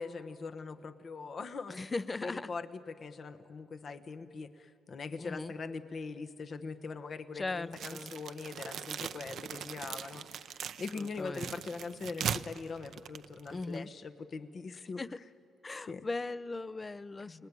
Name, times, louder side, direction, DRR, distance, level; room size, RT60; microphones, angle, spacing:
voice 1, 0.0-1.8 2.2-15.0 15.9-16.1 17.3-17.5, left 4 dB, 45° left, 9 dB, 1.2 m, -42 dB
voice 2, 1.7-2.5 5.2-5.5 7.3-8.1 11.0-11.5 13.5-13.9 15.0-15.2 15.6-17.5, left 3 dB, 25° left, 16 dB, 0.6 m, -38 dB
sound 1, 7.7-13.8, right 8 dB, 65° right, 0.6 m, -40 dB
29.5 x 19.0 x 9.7 m, 2.7 s
cardioid pair, 90°, 0 cm